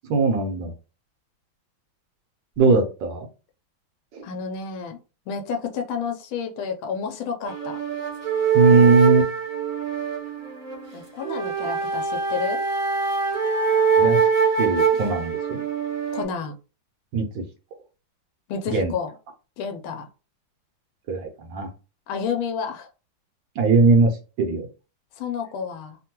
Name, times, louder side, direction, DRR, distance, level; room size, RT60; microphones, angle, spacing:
voice 1, 0.1-0.7 2.6-3.3 4.1-4.2 8.5-9.3 14.0-14.2 14.6-15.6 17.1-17.4 18.7-18.9 21.1-21.7 23.6-24.7, right 3 dB, 75° right, 4 dB, 1.3 m, -20 dB
voice 2, 4.2-5.0 5.3-7.8 10.9-12.6 16.1-16.5 18.5-19.1 19.6-20.1 22.1-22.9 25.2-26.0, left 6 dB, 90° left, 4 dB, 1.4 m, -30 dB
sound 1, 7.4-16.2, right 6 dB, 30° right, 0.7 m, -23 dB
3.5 x 2.2 x 2.9 m, 0.32 s
omnidirectional pair, 2.2 m